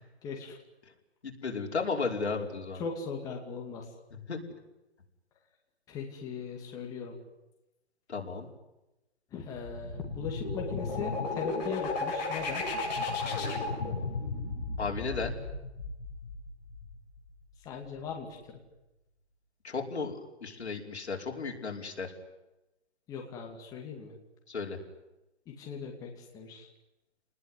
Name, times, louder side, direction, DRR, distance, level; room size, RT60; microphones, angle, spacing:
voice 1, 0.2-0.6 2.7-3.9 5.9-7.1 9.3-12.7 17.6-18.6 23.1-24.1 25.5-26.7, left 5 dB, 10° left, 1 dB, 2.5 m, -39 dB
voice 2, 1.4-2.8 4.3-4.4 8.1-8.5 14.8-15.3 19.6-22.1 24.5-24.8, left 4 dB, 75° left, 1 dB, 5.5 m, -34 dB
sound 1, 9.6-17.2, left 3 dB, 40° left, 7.4 m, -34 dB
29.0 x 20.5 x 9.8 m, 0.99 s
hypercardioid pair, 165°, 34 cm